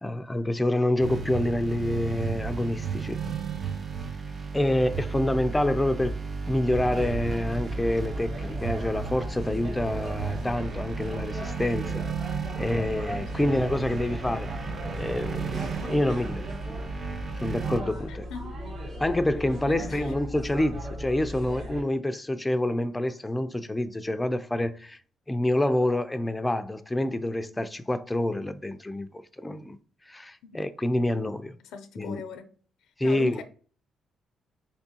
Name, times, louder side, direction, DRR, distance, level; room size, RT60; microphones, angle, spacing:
voice 1, 0.0-3.2 4.5-6.2 6.5-12.0 12.6-14.7 15.0-16.5 17.4-18.3 19.0-25.0 25.3-29.1 29.4-29.8 30.1-31.6 32.0-32.2 33.0-33.4, left 1 dB, 10° left, 0.4 m, -27 dB
sound 1, 1.0-17.8, right 6 dB, 40° right, 0.6 m, -34 dB
voice 2, 4.7-5.2 13.3-13.4 18.1-18.6 19.7-20.1 30.4-30.6 31.6-32.4 33.0-33.4, left 5 dB, 85° left, 0.5 m, -40 dB
sound 2, 6.7-21.8, equal, 60° right, 1.8 m, -37 dB
4.3 x 3.5 x 2.8 m
cardioid pair, 90°, 0 cm